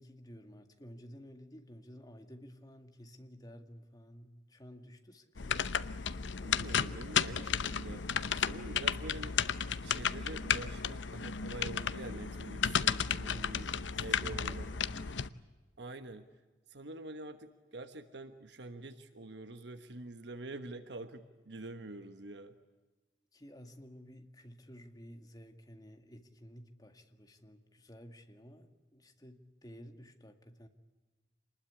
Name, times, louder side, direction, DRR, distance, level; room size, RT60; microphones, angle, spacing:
voice 1, 0.0-5.6 13.2-15.1 23.3-30.7, equal, 20° left, 6 dB, 2.0 m, -53 dB
sound 1, 5.4-15.3, left 7 dB, 75° left, 0.8 m, -33 dB
voice 2, 6.4-8.0 8.4-9.4 9.8-13.7 14.0-15.1 15.8-16.3 16.7-22.5, right 2 dB, 65° right, 9 dB, 1.2 m, -46 dB
27.0 x 20.5 x 9.8 m, 1.2 s
head